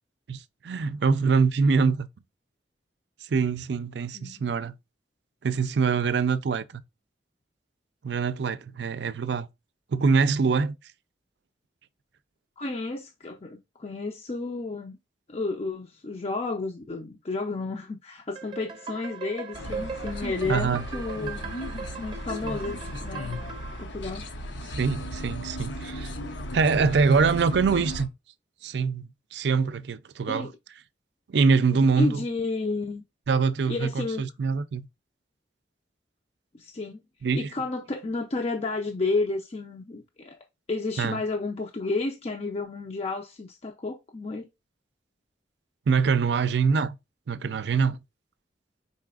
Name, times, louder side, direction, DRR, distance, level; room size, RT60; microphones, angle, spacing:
voice 1, 0.3-2.1 3.2-4.7 5.4-6.8 8.0-9.5 9.9-10.8 20.5-20.8 24.8-26.1 26.5-28.1 28.6-30.5 31.3-32.2 33.3-34.9 37.2-37.5 41.0-41.2 45.9-46.9 47.3-48.0, right 5 dB, 65° right, 0.4 m, -24 dB
voice 2, 4.1-4.5 12.6-15.0 15.3-21.4 22.0-23.4 23.8-24.2 30.3-30.5 32.0-33.0 33.7-34.2 36.5-37.0 37.3-40.4 40.7-44.5, left 3 dB, 35° left, 0.5 m, -31 dB
sound 1, 18.4-23.8, right 5 dB, 25° right, 0.7 m, -39 dB
sound 2, 19.5-28.1, equal, 80° left, 0.8 m, -36 dB
4.8 x 4.1 x 2.4 m
head